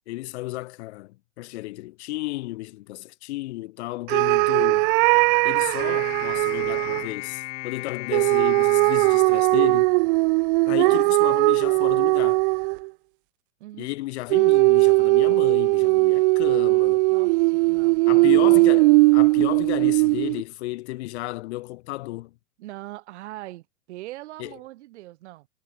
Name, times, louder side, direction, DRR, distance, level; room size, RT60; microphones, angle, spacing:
voice 1, 0.0-4.9 5.4-9.9 10.6-12.4 13.8-17.0 18.1-22.3 24.4-24.5, left 19 dB, 60° left, 2.6 m, -33 dB
sound 1, 4.1-7.1 8.1-12.9 14.3-20.4, right 26 dB, 45° right, 0.6 m, -19 dB
sound 2, 5.8-10.3, left 22 dB, 20° left, 0.3 m, -37 dB
voice 2, 17.1-18.7 22.6-25.5, right 17 dB, 60° right, 3.5 m, -41 dB
hypercardioid pair, 130°, 38 cm